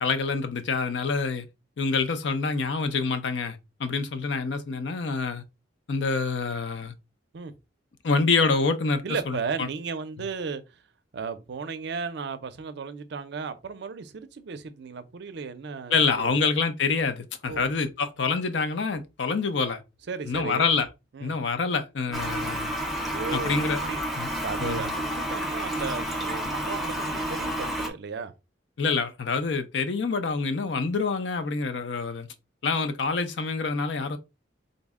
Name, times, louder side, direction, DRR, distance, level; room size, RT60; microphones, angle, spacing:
voice 1, 0.0-1.5 1.8-5.4 5.9-6.9 8.0-9.7 15.9-19.8 20.3-20.9 21.2-22.7 23.3-23.8 24.2-24.3 24.6-24.9 28.8-32.3 32.6-34.2, left 4 dB, 70° left, 0.5 m, -26 dB
voice 2, 9.0-10.8 11.1-16.4 17.5-17.7 20.1-20.7 21.1-21.3 22.1-22.2 23.1-24.0 24.4-28.3, right 5 dB, 65° right, 0.5 m, -35 dB
Toilet flush, 22.1-27.9, right 1 dB, ahead, 0.6 m, -30 dB
3.9 x 2.1 x 3.5 m
head